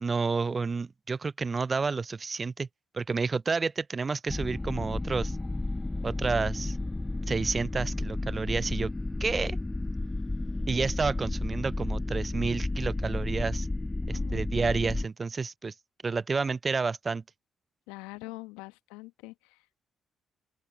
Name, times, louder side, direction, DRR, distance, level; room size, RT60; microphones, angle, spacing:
voice 1, 0.0-2.7 2.9-5.4 6.0-6.8 7.3-8.9 9.2-9.6 10.7-13.7 14.1-15.7 16.0-17.2, right 4 dB, 40° right, 0.5 m, -30 dB
sound 1, 4.3-15.0, left 2 dB, 20° left, 0.3 m, -32 dB
voice 2, 14.1-14.4 17.9-19.8, left 22 dB, 80° left, 1.3 m, -44 dB
open air
hypercardioid pair, 40°, 0 cm